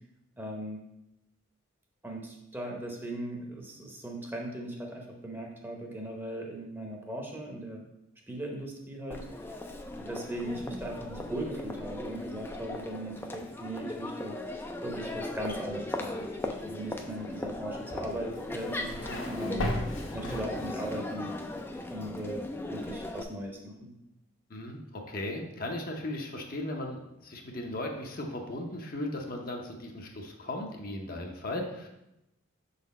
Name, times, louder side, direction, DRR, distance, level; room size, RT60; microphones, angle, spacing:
voice 1, 0.4-0.8 2.0-7.8 8.3-9.2 10.0-14.4 14.8-19.7 20.1-21.3 21.9-23.9, right 1 dB, 10° right, 0 dB, 0.8 m, -38 dB
Crowd, 9.1-23.2, left 1 dB, 10° left, 0.3 m, -38 dB
sound 1, 18.3-21.0, left 1 dB, 65° left, 1.0 m, -36 dB
voice 2, 24.5-31.9, left 1 dB, 45° left, 2 dB, 0.7 m, -37 dB
6.2 x 4.1 x 4.1 m, 0.90 s
head